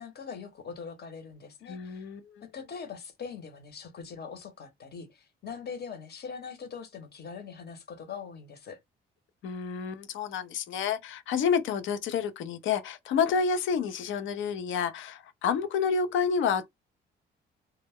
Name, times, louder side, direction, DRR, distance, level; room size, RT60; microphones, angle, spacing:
voice 1, 0.0-2.1 2.4-8.8, left 6 dB, 55° left, 1.0 m, -42 dB
voice 2, 1.7-2.4 9.4-16.7, left 6 dB, 75° left, 0.6 m, -29 dB
2.2 x 2.1 x 3.4 m
cardioid pair, 90°, 20 cm